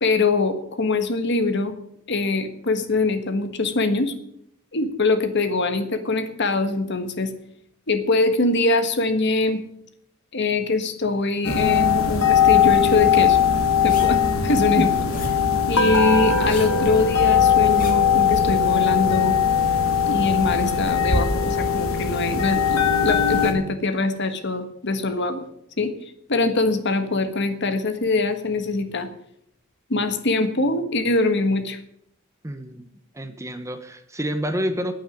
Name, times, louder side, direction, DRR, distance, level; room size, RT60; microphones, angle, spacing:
voice 1, 0.0-1.7 2.1-4.1 4.7-7.3 7.9-9.6 10.3-13.4 13.8-14.2 14.4-14.9 15.7-19.4 20.0-25.4 25.8-25.9 26.3-29.1 29.9-31.8, left 3 dB, 60° left, 8 dB, 1.5 m, -23 dB
sound 1, 11.4-23.5, left 7 dB, 90° left, 2.1 m, -19 dB
sound 2, 13.9-15.5 16.3-18.2 18.9-19.0, left 1 dB, 40° left, 3.2 m, -37 dB
voice 2, 32.4-32.9 33.1-34.9, equal, 15° right, 8 dB, 1.0 m, -28 dB
9.3 x 9.0 x 9.5 m, 0.73 s
head